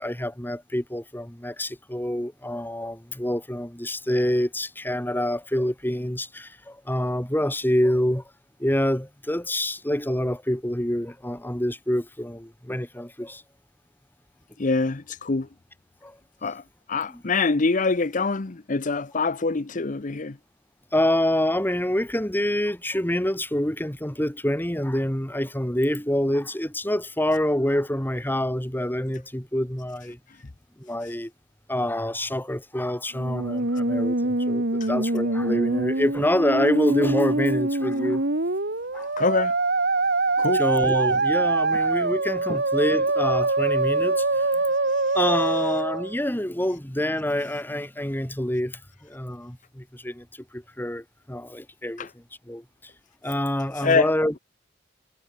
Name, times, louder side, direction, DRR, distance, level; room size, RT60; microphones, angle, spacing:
voice 1, 0.0-8.2 8.6-13.4 16.0-16.2 17.1-17.2 20.9-30.2 30.8-31.3 31.7-38.2 38.9-39.1 40.5-44.6 45.1-50.3 50.5-52.6 53.2-54.4, left 1 dB, 10° left, 3.6 m, -26 dB
voice 2, 14.6-15.5 16.4-16.6 16.9-20.4 34.8-34.9 39.2-39.5 40.4-40.6 42.5-42.6 52.0-52.1 53.8-54.1, left 4 dB, 45° left, 0.8 m, -24 dB
Musical instrument, 33.1-46.2, right 2 dB, 60° right, 2.7 m, -24 dB
head